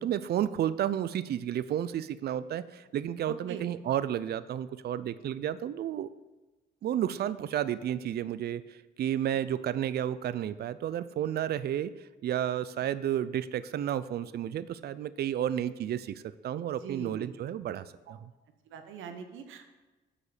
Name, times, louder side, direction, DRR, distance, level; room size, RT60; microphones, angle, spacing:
voice 1, 0.0-6.1 6.8-18.3, right 10 dB, 55° right, 15 dB, 0.4 m, -32 dB
voice 2, 16.8-17.3 18.7-19.7, right 6 dB, 80° right, 7 dB, 0.9 m, -42 dB
8.4 x 5.1 x 5.0 m, 1.2 s
cardioid pair, 90°, 20 cm